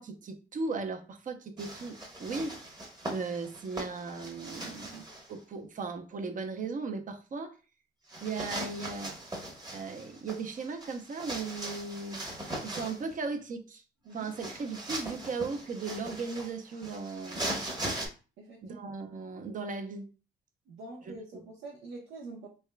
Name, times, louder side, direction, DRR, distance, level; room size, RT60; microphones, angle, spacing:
voice 1, 0.0-2.6 3.1-7.6 8.2-9.2 9.7-12.2 12.6-13.8 14.1-17.7 18.6-20.1 21.3-21.4, right 4 dB, 40° right, 0.7 m, -37 dB
sound 1, 1.6-5.3 8.1-13.1 14.1-18.1, right 1 dB, 20° right, 1.0 m, -40 dB
voice 2, 18.4-18.8 20.7-22.5, right 2 dB, 80° right, 0.9 m, -45 dB
3.5 x 3.3 x 2.2 m
cardioid pair, 90°, 20 cm